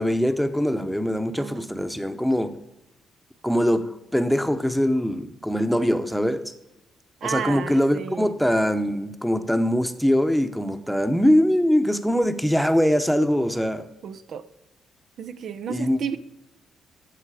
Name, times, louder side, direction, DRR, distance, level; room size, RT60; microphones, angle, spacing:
voice 1, 0.0-2.5 3.4-6.5 7.2-13.9 15.7-16.0, equal, ahead, 0.9 m, -22 dB
voice 2, 7.2-8.3 14.0-14.4 15.2-16.2, right 7 dB, 65° right, 0.6 m, -32 dB
13.5 x 7.8 x 4.9 m
cardioid pair, 90°, 0 cm